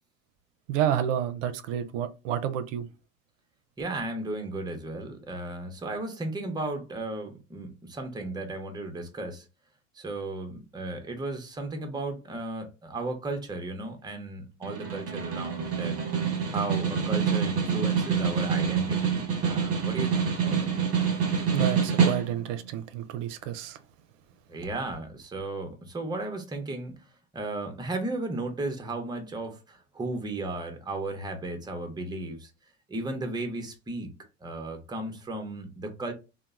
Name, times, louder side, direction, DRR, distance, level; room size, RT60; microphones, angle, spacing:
voice 1, 0.7-2.9 21.5-23.8, right 10 dB, 75° right, 0.5 m, -30 dB
voice 2, 3.8-9.4 9.9-16.0 16.5-20.7 24.5-27.0 27.3-32.5 32.9-34.1 34.4-36.1, right 2 dB, 10° right, 0.7 m, -35 dB
Snare drum, 14.6-22.6, right 6 dB, 35° right, 1.1 m, -26 dB
2.8 x 2.1 x 2.4 m
hypercardioid pair, 90°, 39 cm